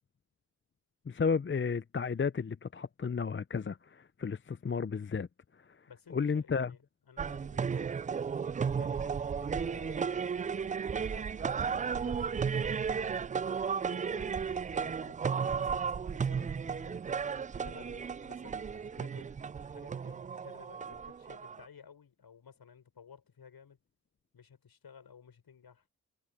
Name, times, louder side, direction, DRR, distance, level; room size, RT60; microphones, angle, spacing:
voice 1, 1.1-5.3 6.1-6.7, left 5 dB, 30° left, 0.8 m, -32 dB
voice 2, 5.9-8.0 8.7-12.2 12.5-13.2 13.8-17.0 17.5-23.8 24.3-25.8, left 7 dB, 60° left, 6.5 m, -55 dB
sound 1, 7.2-21.7, right 6 dB, 20° right, 0.3 m, -34 dB
supercardioid pair, 40°, 42 cm